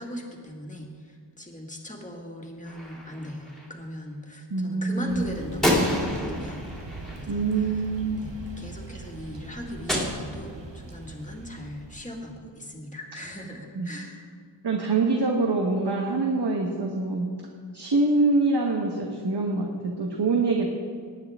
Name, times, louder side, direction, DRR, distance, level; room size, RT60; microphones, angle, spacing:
voice 1, 0.0-7.9 8.2-14.3, equal, 15° left, 0 dB, 1.9 m, -39 dB
Gunshot gunfire, 2.6-3.7 5.6-8.0 9.9-10.9, left 1 dB, ahead, 2.6 m, -29 dB
voice 2, 4.5-5.2 7.3-8.2 13.7-13.9 14.6-17.3 17.7-20.7, right 3 dB, 65° right, 1 dB, 1.2 m, -25 dB
sound 1, 5.1-12.3, right 3 dB, 80° right, 1.4 m, -41 dB
18.5 x 9.5 x 3.6 m, 2.1 s
wide cardioid pair, 85°, 43 cm